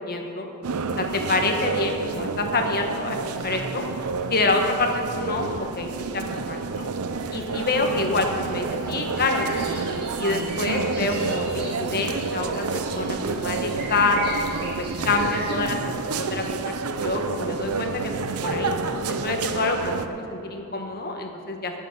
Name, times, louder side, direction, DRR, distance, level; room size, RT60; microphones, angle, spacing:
voice 1, 0.1-0.5 1.0-3.2 3.4-3.8 4.3-6.9 7.3-9.8 10.2-12.6 12.9-14.5 14.8-16.7 17.0-18.1 18.4-18.7 19.2-21.7, left 3 dB, 45° left, 3 dB, 1.4 m, -27 dB
sound 1, 0.6-20.1, right 4 dB, 85° right, 0.7 m, -29 dB
sound 2, 9.2-15.6, right 2 dB, 45° right, 2.6 m, -38 dB
18.5 x 7.2 x 5.9 m, 3.0 s
head